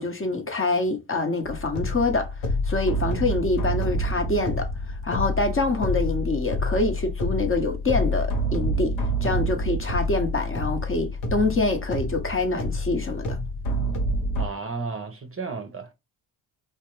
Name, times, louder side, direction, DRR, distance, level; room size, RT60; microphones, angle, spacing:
voice 1, 0.0-2.4 2.6-8.9 9.2-13.4, left 2 dB, 25° left, 0.8 m, -26 dB
sound 1, 1.4-14.5, equal, 75° left, 1.0 m, -27 dB
voice 2, 14.4-15.9, right 4 dB, 30° right, 0.7 m, -33 dB
2.5 x 2.1 x 2.9 m
supercardioid pair, 65°, 47 cm